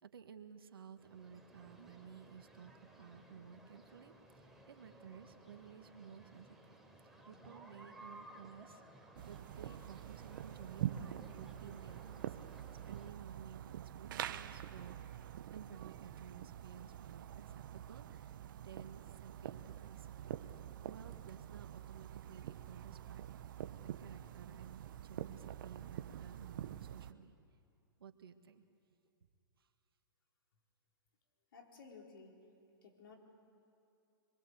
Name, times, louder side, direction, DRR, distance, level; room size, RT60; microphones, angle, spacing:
voice 1, 0.0-2.7 3.0-6.7 7.3-8.8 9.2-12.4 12.9-15.0 15.5-23.2 23.8-27.4 28.0-28.6 29.6-29.7, right 7 dB, 80° right, 8 dB, 1.8 m, -55 dB
sound 1, 1.0-13.1, right 1 dB, ahead, 3.3 m, -59 dB
sound 2, 9.2-27.1, right 11 dB, 65° right, 0.9 m, -46 dB
voice 2, 31.5-32.3 32.8-33.2, left 5 dB, 70° left, 1 dB, 4.7 m, -55 dB
26.0 x 23.0 x 8.3 m, 2.7 s
hypercardioid pair, 125°, 12 cm